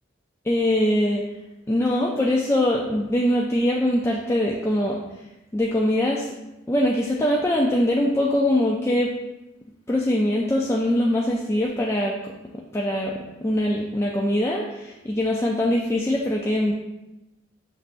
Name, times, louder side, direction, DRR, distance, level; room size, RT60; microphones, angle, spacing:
voice 1, 0.4-1.2 1.7-5.0 5.5-6.3 6.7-9.1 9.9-12.3 12.7-16.7, left 1 dB, 15° left, -2 dB, 0.3 m, -22 dB
6.5 x 3.2 x 2.5 m, 0.98 s
head